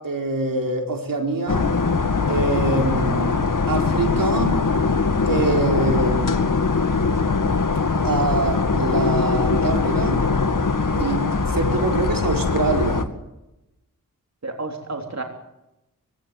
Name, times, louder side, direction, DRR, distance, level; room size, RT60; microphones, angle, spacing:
voice 1, 0.0-1.7 2.3-4.6 5.3-6.5 8.0-10.3 11.0-11.2 11.5-13.1, right 3 dB, 75° right, 3 dB, 4.4 m, -25 dB
sound 1, 1.5-13.0, left 4 dB, 65° left, 2.1 m, -21 dB
voice 2, 10.9-11.2 14.4-15.2, right 3 dB, 50° right, 2 dB, 3.5 m, -31 dB
23.5 x 17.0 x 9.4 m, 0.92 s
cardioid pair, 50°, 34 cm